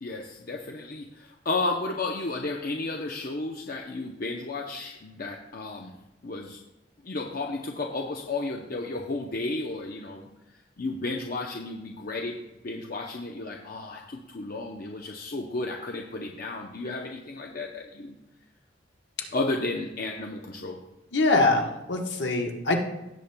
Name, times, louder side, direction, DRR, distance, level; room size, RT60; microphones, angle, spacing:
voice 1, 0.0-5.9 6.2-6.6 7.0-10.3 10.8-12.4 12.6-18.2 19.3-20.8, left 2 dB, 50° left, 1 dB, 0.7 m, -33 dB
voice 2, 21.1-22.8, left 2 dB, 65° left, 2 dB, 1.2 m, -24 dB
17.0 x 7.0 x 2.2 m, 0.94 s
head